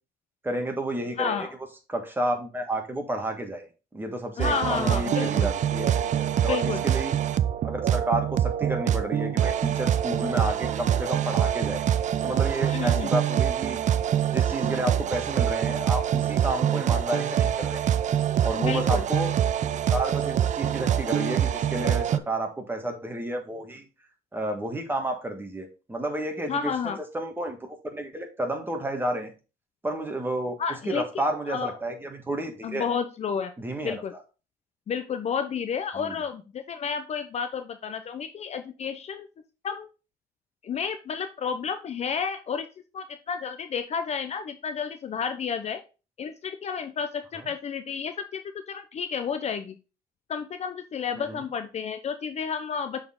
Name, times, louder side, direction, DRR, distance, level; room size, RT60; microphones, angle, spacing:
voice 1, 0.4-1.5 1.9-3.7 3.9-7.2 7.6-11.8 12.2-13.8 14.3-17.9 18.4-19.3 19.9-23.8 24.3-29.3 29.8-30.5 30.8-32.9 33.6-34.0 36.0-36.2 47.3-47.5 51.2-51.4, right 1 dB, 10° right, 4 dB, 1.5 m, -31 dB
voice 2, 1.2-1.5 4.4-5.5 6.5-6.8 12.6-13.1 18.6-19.0 26.5-27.0 30.6-31.1 31.5-31.7 32.6-33.5 33.8-34.1 34.9-39.3 39.6-39.9 40.6-42.7 42.9-45.8 46.2-49.8 50.3-53.0, left 6 dB, 40° left, 9 dB, 0.6 m, -31 dB
sound 1, 4.4-22.2, right 10 dB, 45° right, 0.5 m, -25 dB
6.8 x 4.2 x 3.7 m, 0.32 s
cardioid pair, 110°, 17 cm